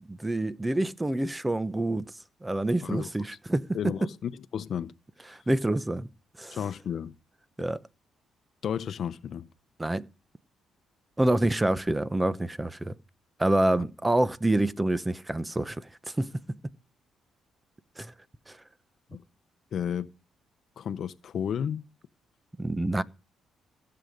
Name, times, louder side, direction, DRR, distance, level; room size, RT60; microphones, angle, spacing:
voice 1, 0.1-2.1 2.4-3.6 5.5-6.1 6.4-6.6 7.6-7.8 9.8-10.1 11.2-12.9 13.4-15.9 16.2-16.3 18.0-18.1 18.5-18.6 22.6-23.0, right 1 dB, 15° right, 0.9 m, -27 dB
voice 2, 3.7-4.9 6.5-7.1 8.6-9.5 13.8-13.9 19.1-19.2 19.7-20.1 20.8-21.8, left 8 dB, 60° left, 0.8 m, -32 dB
16.0 x 7.9 x 5.2 m
cardioid pair, 90°, 0 cm